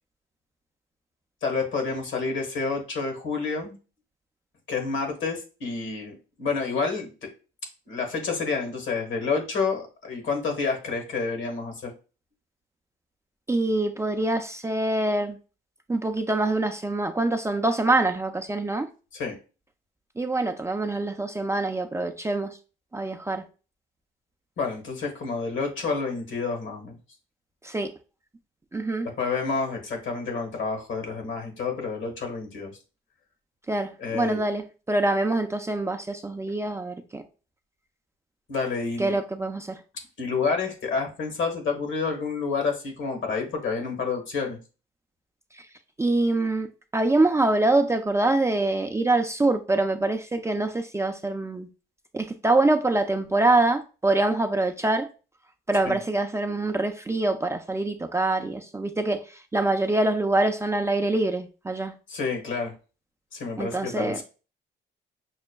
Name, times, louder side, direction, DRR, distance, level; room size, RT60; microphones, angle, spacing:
voice 1, 1.4-3.7 4.7-7.1 7.9-11.9 19.1-19.4 24.6-27.0 29.2-32.7 34.0-34.4 38.5-39.2 40.2-44.6 55.8-56.0 62.1-62.7 63.3-64.2, left 4 dB, 75° left, 1.4 m, -29 dB
voice 2, 13.5-15.4 15.9-18.9 20.2-22.6 22.9-23.4 27.6-27.9 28.7-29.1 33.7-37.2 39.0-39.8 45.6-45.7 46.0-51.7 52.1-55.1 55.7-61.9 63.6-64.2, right 2 dB, 15° right, 0.3 m, -25 dB
6.1 x 2.1 x 2.2 m
cardioid pair, 90°, 20 cm